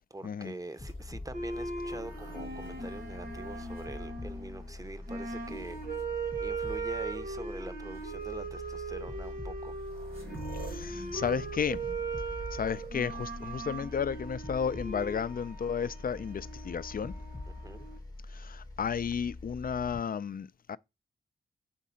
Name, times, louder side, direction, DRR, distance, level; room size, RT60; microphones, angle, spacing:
voice 1, 0.0-5.8 6.4-9.7 17.6-17.9, right 2 dB, 15° right, 0.7 m, -44 dB
sound 1, 0.8-20.0, left 2 dB, 20° left, 0.8 m, -44 dB
sound 2, 0.8-4.6 5.3-6.0 7.1-7.2 7.9-8.1 9.3-9.4 9.5-14.0 15.9-16.6, right 1 dB, 80° right, 3.4 m, -48 dB
sound 3, 1.3-18.0, right 4 dB, 45° right, 1.0 m, -39 dB
voice 2, 10.5-11.8 12.5-17.1 18.3-20.8, left 7 dB, 45° left, 0.4 m, -33 dB
5.2 x 3.7 x 5.6 m
cardioid pair, 55°, 21 cm